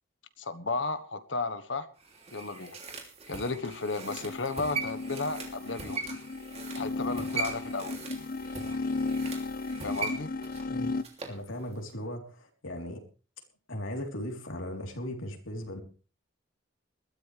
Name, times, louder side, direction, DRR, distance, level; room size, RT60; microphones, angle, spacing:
voice 1, 0.4-1.9 2.3-2.8 3.3-6.0 6.7-8.0 9.8-10.3, left 3 dB, 70° left, 12 dB, 1.3 m, -33 dB
sound 1, 2.0-11.4 11.7-11.8, right 4 dB, 30° right, 3.0 m, -40 dB
sound 2, 4.0-11.0, left 3 dB, 45° left, 0.6 m, -35 dB
voice 2, 11.3-13.0 13.7-15.8, left 1 dB, 85° left, 2 dB, 3.7 m, -37 dB
21.0 x 13.5 x 3.4 m, 0.37 s
head